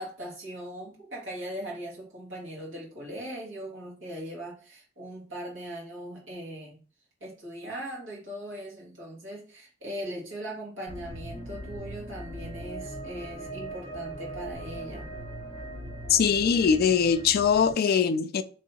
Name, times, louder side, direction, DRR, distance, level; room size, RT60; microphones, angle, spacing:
voice 1, 0.0-6.8 7.2-15.1, right 1 dB, 70° right, 1.7 m, -39 dB
sound 1, 10.9-17.7, right 1 dB, 10° left, 1.1 m, -40 dB
voice 2, 16.1-18.4, left 6 dB, 50° left, 0.3 m, -22 dB
3.1 x 2.7 x 4.2 m
head